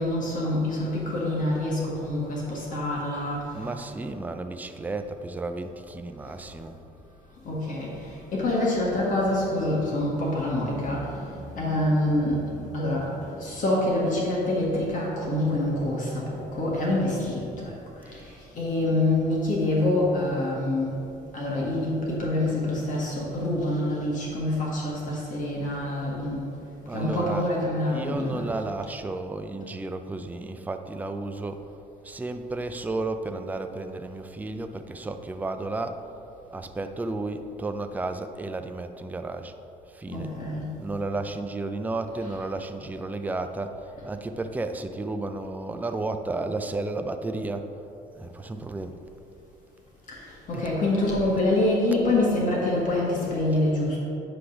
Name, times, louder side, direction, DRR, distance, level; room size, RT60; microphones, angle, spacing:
voice 1, 0.0-3.8 7.4-20.9 21.3-26.5 26.9-28.5 40.1-40.7 42.2-42.3 50.1-54.0, left 1 dB, 50° left, -4 dB, 1.6 m, -26 dB
voice 2, 3.5-6.8 26.9-27.5 27.9-31.6 32.0-36.0 36.5-39.5 39.9-40.3 40.8-47.7 48.1-49.0 50.5-50.7, right 2 dB, 10° right, 7 dB, 0.4 m, -33 dB
9.6 x 3.4 x 5.9 m, 2.8 s
cardioid pair, 110°, 17 cm